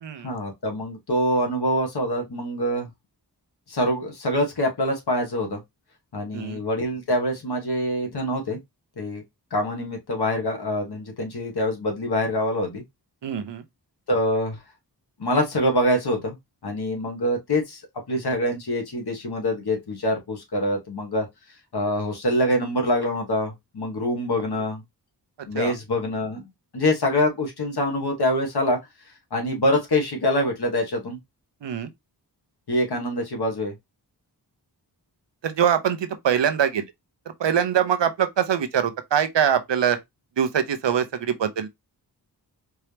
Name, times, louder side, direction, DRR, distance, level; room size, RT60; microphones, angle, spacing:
voice 1, 0.2-2.9 3.7-5.6 6.1-8.6 9.0-9.2 9.5-12.8 14.1-14.6 15.2-16.4 16.6-17.8 18.1-21.2 21.7-24.8 25.5-26.5 26.7-28.8 29.3-31.2 32.7-33.7, left 1 dB, 65° left, 1.6 m, -25 dB
voice 2, 13.2-13.6 25.5-25.7 31.6-31.9 35.4-36.8 37.4-40.0 40.4-41.7, right 8 dB, 90° right, 0.8 m, -23 dB
4.5 x 2.9 x 3.4 m
wide cardioid pair, 110°, 42 cm